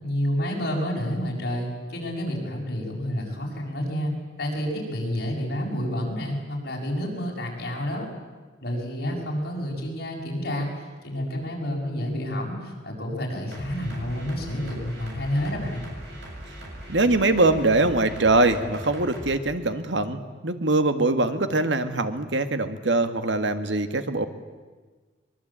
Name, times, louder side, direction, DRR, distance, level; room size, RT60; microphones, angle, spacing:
voice 1, 0.0-4.1 4.4-8.1 8.6-15.9, equal, 60° left, -1 dB, 7.2 m, -29 dB
sound 1, 13.5-19.3, right 1 dB, 65° right, 7.8 m, -40 dB
voice 2, 16.9-24.3, right 2 dB, 85° right, 9 dB, 1.8 m, -23 dB
23.5 x 22.5 x 8.9 m, 1.4 s
head